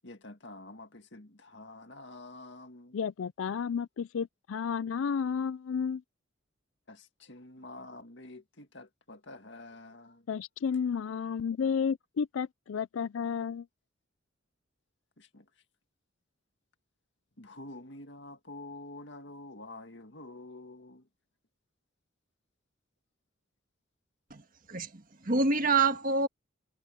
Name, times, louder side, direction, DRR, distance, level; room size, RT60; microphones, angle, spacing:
voice 1, 0.0-3.1 6.9-10.3 15.2-15.5 17.4-21.1, left 2 dB, 60° left, 2.1 m, -48 dB
voice 2, 2.9-6.0 10.3-13.7, left 6 dB, 75° left, 0.4 m, -32 dB
voice 3, 24.7-26.3, right 4 dB, 45° right, 1.7 m, -27 dB
head